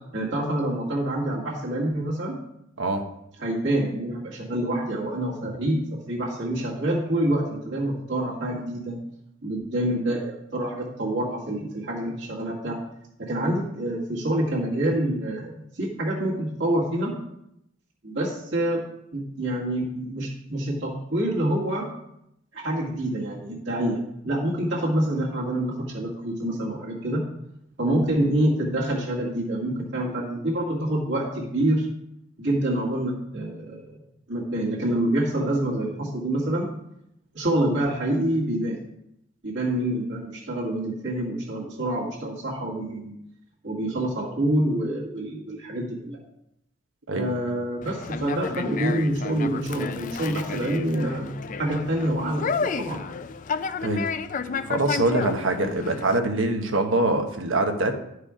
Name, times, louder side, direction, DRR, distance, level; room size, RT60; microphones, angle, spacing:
voice 1, 0.1-2.4 3.4-5.8 6.1-9.0 9.4-12.8 13.2-17.1 18.0-18.8 19.1-21.9 22.5-24.0 24.3-27.2 27.8-31.9 32.4-34.0 34.3-36.7 37.3-38.8 39.4-43.1 43.6-46.2 47.1-52.5 52.8-53.0, right 1 dB, 65° right, -6 dB, 2.0 m, -26 dB
Conversation, 47.8-56.2, left 5 dB, 40° left, 0.4 m, -31 dB
voice 2, 53.8-54.2 54.6-58.0, right 2 dB, 85° right, 5 dB, 1.1 m, -24 dB
11.5 x 4.9 x 5.0 m, 0.79 s
head